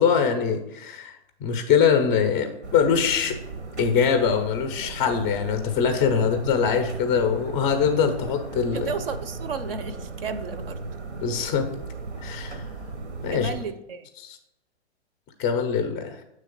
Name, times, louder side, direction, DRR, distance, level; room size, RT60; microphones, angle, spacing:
voice 1, 0.0-3.4 3.8-8.9 11.2-11.7 12.2-12.6 13.2-13.5 14.2-14.4 15.4-16.2, left 7 dB, 15° left, 6 dB, 0.4 m, -23 dB
sound 1, 2.6-13.6, right 3 dB, 90° right, 0.9 m, -36 dB
voice 2, 8.7-10.8 13.3-14.1, right 5 dB, 55° right, 11 dB, 0.6 m, -33 dB
7.6 x 3.2 x 5.1 m, 0.82 s
hypercardioid pair, 130°, 34 cm